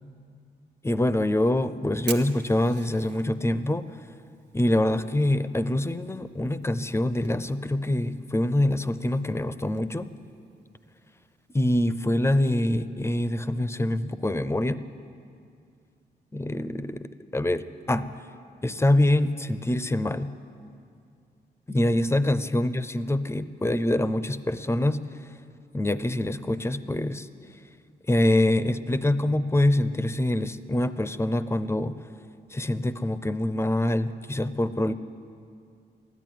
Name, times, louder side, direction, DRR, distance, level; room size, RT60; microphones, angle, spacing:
voice 1, 0.8-4.1 4.5-10.1 11.5-14.8 16.3-17.1 17.3-18.1 18.6-20.3 21.7-25.3 25.7-27.3 28.1-32.0 32.5-34.9, left 1 dB, 15° left, 13 dB, 0.6 m, -25 dB
Fire, 1.0-12.5, right 7 dB, 90° right, 0.9 m, -48 dB
13.5 x 10.5 x 9.2 m, 2.4 s
cardioid pair, 70°, 18 cm